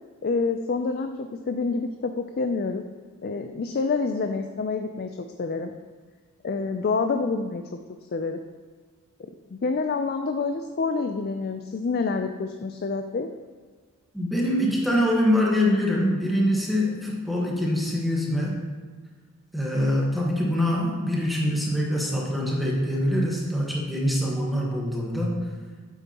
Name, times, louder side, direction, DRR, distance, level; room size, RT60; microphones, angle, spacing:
voice 1, 0.2-2.8 3.2-5.7 6.4-7.6 8.1-8.4 9.5-13.3, left 4 dB, 45° left, 6 dB, 0.4 m, -27 dB
voice 2, 14.1-18.6 19.5-25.4, equal, ahead, -3 dB, 1.4 m, -24 dB
9.2 x 8.1 x 2.9 m, 1.5 s
head